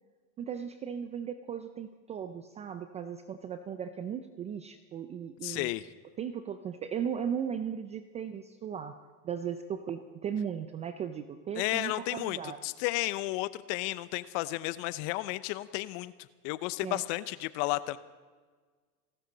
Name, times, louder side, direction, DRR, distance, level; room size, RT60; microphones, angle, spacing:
voice 1, 0.4-5.7 6.2-9.0 9.2-12.6 16.8-17.0, right 8 dB, 15° right, 10 dB, 0.4 m, -37 dB
voice 2, 5.4-5.9 11.6-16.1 16.4-18.0, left 18 dB, 45° left, 16 dB, 0.8 m, -33 dB
29.0 x 12.5 x 4.0 m, 1.5 s
hypercardioid pair, 110°, 50 cm